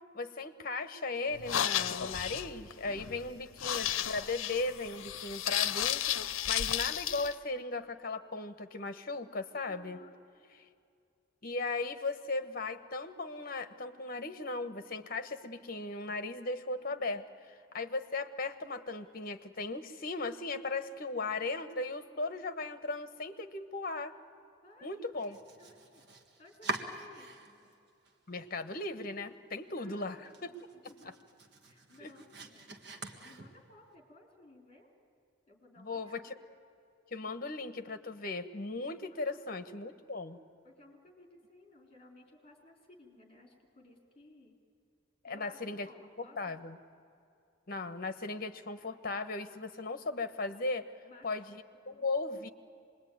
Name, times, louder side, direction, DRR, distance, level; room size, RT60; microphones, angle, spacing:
voice 1, 0.1-6.0 6.5-10.0 11.4-24.2 24.8-25.4 28.3-30.5 31.0-31.1 32.0-32.1 35.8-36.3 37.1-40.4 45.2-45.9 46.2-46.8 47.7-50.9 51.2-52.5, left 3 dB, 45° left, 10 dB, 1.2 m, -37 dB
sound 1, 1.3-7.3, left 10 dB, 80° left, 0.7 m, -33 dB
voice 2, 2.8-3.2 9.7-10.2 16.8-17.1 24.6-26.0 26.4-27.7 29.8-31.1 31.7-34.9 35.5-36.3 39.1-39.4 40.6-44.6 45.3-46.7 51.0-51.4 51.7-52.1, left 2 dB, 30° left, 2 dB, 4.0 m, -59 dB
Domestic sounds home sounds, 25.2-27.7 28.1-28.8 29.2-29.3 29.7-29.8 30.2-33.9, right 2 dB, 55° right, 1.7 m, -44 dB
25.5 x 21.0 x 9.4 m, 2.5 s
head